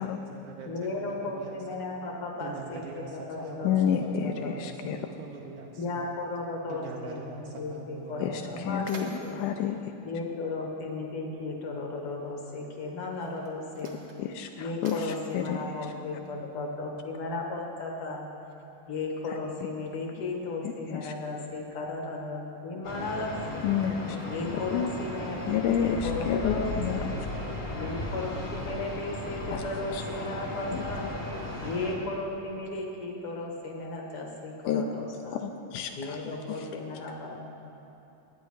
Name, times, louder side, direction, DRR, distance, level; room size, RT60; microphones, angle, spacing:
voice 1, 0.0-1.8 2.4-6.1 6.7-8.7, right 4 dB, 75° right, -1 dB, 2.1 m, -43 dB
voice 2, 0.6-5.0 5.8-9.4 10.0-13.9 14.6-18.3 18.9-23.7 24.3-27.1 27.8-31.1 31.6-35.4 36.0-37.4, left 2 dB, 60° left, 0 dB, 1.6 m, -35 dB
voice 3, 3.6-5.0 8.2-9.9 13.8-13.9 14.2-15.6 19.3-19.4 20.6-21.1 23.6-24.2 24.7-27.1 29.5-29.6 29.9-30.2 30.7-31.1 34.7-34.8 35.3-36.2 36.5-36.7, left 8 dB, 80° left, 5 dB, 2.0 m, -30 dB
Mechanisms, 8.8-11.1 12.1-12.2 13.0-16.6, right 3 dB, 55° right, 1.7 m, -51 dB
sound 1, 22.8-31.9, left 1 dB, 40° left, 0.9 m, -36 dB
19.5 x 9.0 x 3.2 m, 2.9 s
omnidirectional pair, 3.6 m